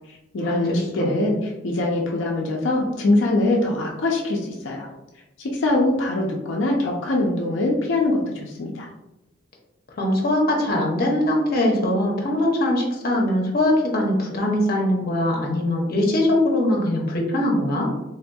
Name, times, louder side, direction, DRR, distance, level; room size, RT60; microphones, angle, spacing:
voice 1, 0.3-4.9 5.4-8.9, left 2 dB, 85° left, -1 dB, 0.4 m, -23 dB
voice 2, 10.0-17.9, left 1 dB, 50° left, -1 dB, 0.7 m, -21 dB
3.4 x 2.6 x 2.2 m, 0.97 s
head